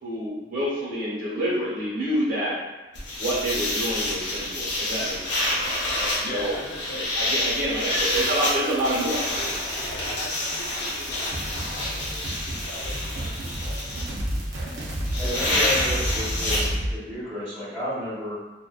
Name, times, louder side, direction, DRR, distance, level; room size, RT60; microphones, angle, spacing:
voice 1, 0.0-2.6 3.2-5.5 6.2-6.5 7.1-9.2, right 1 dB, 50° right, -8 dB, 1.1 m, -27 dB
sound 1, 3.0-16.7, left 1 dB, 80° left, 0.7 m, -28 dB
voice 2, 6.2-7.2 7.7-8.0 9.1-12.2 12.5-13.5, left 1 dB, 50° left, -1 dB, 0.4 m, -40 dB
sound 2, 8.1-15.3, right 2 dB, 25° right, 0.5 m, -44 dB
sound 3, 11.3-16.9, right 1 dB, 70° right, 0.5 m, -31 dB
voice 3, 15.2-18.3, left 1 dB, 5° left, -17 dB, 1.1 m, -32 dB
2.5 x 2.2 x 2.2 m, 1.1 s
head